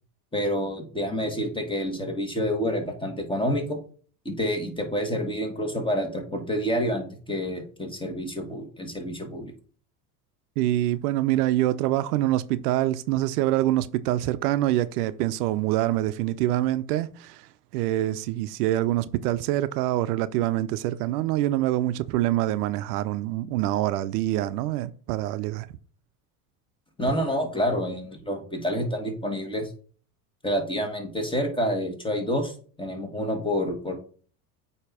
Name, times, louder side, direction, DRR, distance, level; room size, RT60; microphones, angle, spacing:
voice 1, 0.3-3.8 4.3-9.5 27.0-29.7 30.4-33.9, equal, 10° left, 1.7 m, -28 dB
voice 2, 10.6-25.7, right 14 dB, 80° right, 0.5 m, -25 dB
8.4 x 2.9 x 4.7 m
hypercardioid pair, 85°, 46 cm